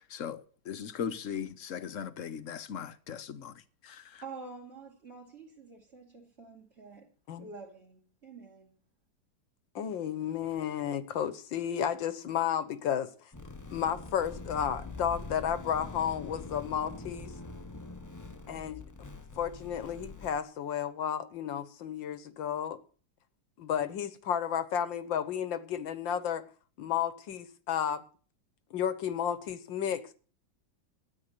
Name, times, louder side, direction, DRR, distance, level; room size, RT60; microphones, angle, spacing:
voice 1, 0.0-4.2, left 7 dB, 50° left, 1.1 m, -39 dB
voice 2, 4.2-7.1 7.4-8.8, right 4 dB, 35° right, 2.6 m, -48 dB
voice 3, 9.8-13.1 13.7-17.3 18.5-18.9 19.4-22.8 23.6-26.4 26.8-28.0 28.7-30.1, left 9 dB, 85° left, 1.9 m, -32 dB
sound 1, 13.3-20.4, left 3 dB, 20° left, 0.5 m, -44 dB
13.5 x 9.5 x 6.7 m
omnidirectional pair, 2.0 m